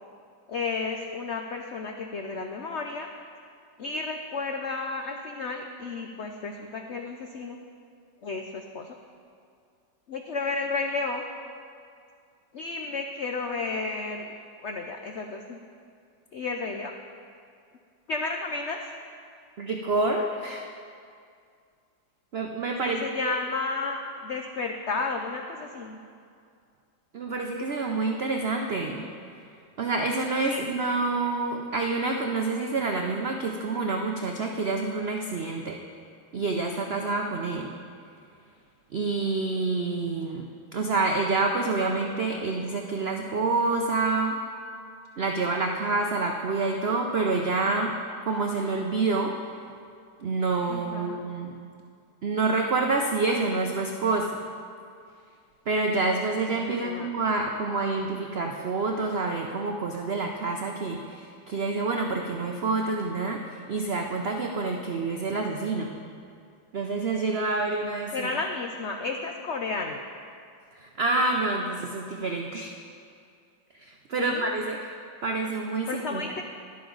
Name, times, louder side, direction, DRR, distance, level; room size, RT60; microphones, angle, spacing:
voice 1, 0.5-3.1 3.8-7.6 8.2-8.9 10.1-11.2 12.5-14.3 14.6-15.6 16.3-16.9 18.1-18.8 22.8-26.0 30.5-30.6 50.7-51.2 56.6-57.1 68.1-70.0 74.2-74.4 75.9-76.4, left 3 dB, 80° left, 3 dB, 0.6 m, -32 dB
voice 2, 19.6-20.7 22.3-23.4 27.1-29.4 29.8-35.8 36.3-37.7 38.9-40.5 40.7-44.4 45.2-47.9 48.3-49.5 50.2-51.5 52.2-54.5 55.7-66.0 66.7-68.3 70.7-72.7 73.7-74.9 75.2-76.2, right 3 dB, 75° right, 2 dB, 0.5 m, -28 dB
12.0 x 11.0 x 3.9 m, 2.3 s
omnidirectional pair, 1.9 m